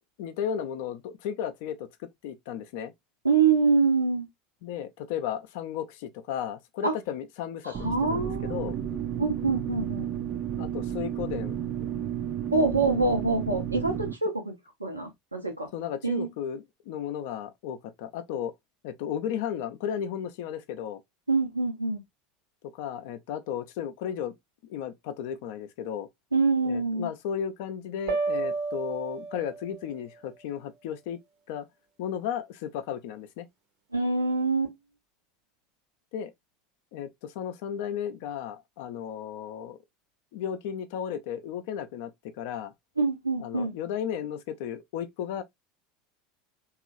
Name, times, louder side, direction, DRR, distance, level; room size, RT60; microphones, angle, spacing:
voice 1, 0.2-1.9 2.2-2.9 4.6-8.8 10.6-11.6 15.7-18.5 18.8-21.0 22.7-24.3 24.7-26.1 26.6-31.2 31.5-31.7 32.0-33.5 36.1-36.3 36.9-39.8 40.3-42.7 43.4-45.4, left 9 dB, 55° left, 0.4 m, -34 dB
voice 2, 3.2-4.3 6.8-6.9 7.6-10.1 12.5-14.5 14.8-15.7 16.0-16.3 21.3-22.0 26.3-27.1 33.9-34.7 43.0-43.8, right 4 dB, 85° right, 0.7 m, -25 dB
sound 1, 7.7-14.1, right 10 dB, 35° right, 0.4 m, -32 dB
sound 2, 28.1-30.0, right 3 dB, 55° right, 0.8 m, -31 dB
3.0 x 2.3 x 2.5 m
figure-of-eight pair, 75°, 0 cm